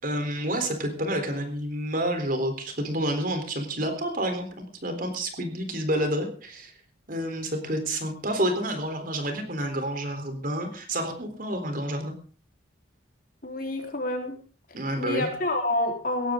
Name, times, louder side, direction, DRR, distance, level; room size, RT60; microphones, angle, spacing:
voice 1, 0.0-6.7 7.1-12.1 14.7-15.3, right 1 dB, 45° right, 7 dB, 3.7 m, -29 dB
voice 2, 13.4-14.4 15.0-16.3, left 2 dB, 45° left, 3 dB, 4.0 m, -28 dB
18.0 x 15.0 x 3.8 m, 0.38 s
head